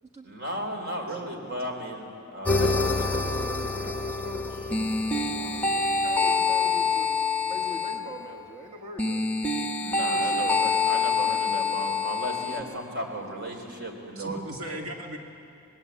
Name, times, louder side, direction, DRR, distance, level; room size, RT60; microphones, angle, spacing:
voice 1, 0.2-2.9 9.8-14.4, right 1 dB, 55° right, 3 dB, 3.9 m, -35 dB
sound 1, 2.5-8.1 9.0-12.6, left 4 dB, 5° left, 0.9 m, -26 dB
voice 2, 2.6-4.8 5.3-9.2 10.0-10.7, right 1 dB, 30° right, 1 dB, 1.4 m, -42 dB
voice 3, 11.6-12.2 12.6-13.0 13.5-15.2, right 1 dB, 90° right, 1 dB, 2.3 m, -41 dB
25.5 x 20.0 x 8.4 m, 2.6 s
head